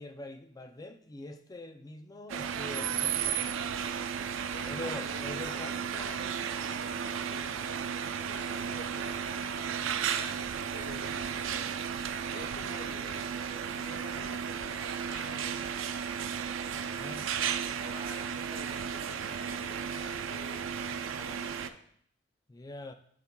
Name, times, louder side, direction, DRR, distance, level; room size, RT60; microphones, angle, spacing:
voice 1, 0.0-3.7 4.7-5.9 10.9-11.1 16.9-17.3 22.5-22.9, left 2 dB, 20° left, 0.3 m, -44 dB
sound 1, 2.3-21.7, right 7 dB, 80° right, 0.4 m, -34 dB
voice 2, 4.5-12.0 12.3-15.9 16.6-17.0 17.8-21.8, left 1 dB, 75° left, 1.6 m, -50 dB
8.3 x 5.5 x 2.3 m
head